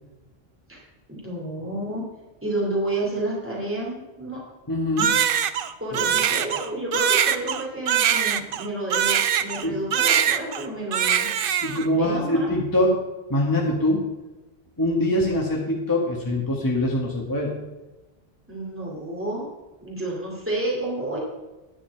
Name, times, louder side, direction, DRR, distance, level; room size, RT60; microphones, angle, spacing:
voice 1, 1.1-2.0 2.4-4.4 5.8-11.3 12.0-12.5 18.5-19.5 19.8-21.2, right 1 dB, 10° right, -3 dB, 2.5 m, -30 dB
voice 2, 4.7-5.1 9.6-9.8 11.6-13.0 13.3-14.0 14.8-17.5, left 1 dB, 20° left, -3 dB, 1.6 m, -23 dB
Crying sobbing, 5.0-9.7 9.9-10.7 10.9-11.9, right 9 dB, 65° right, 0.7 m, -22 dB
10.5 x 9.9 x 4.7 m, 1.1 s
omnidirectional pair, 1.0 m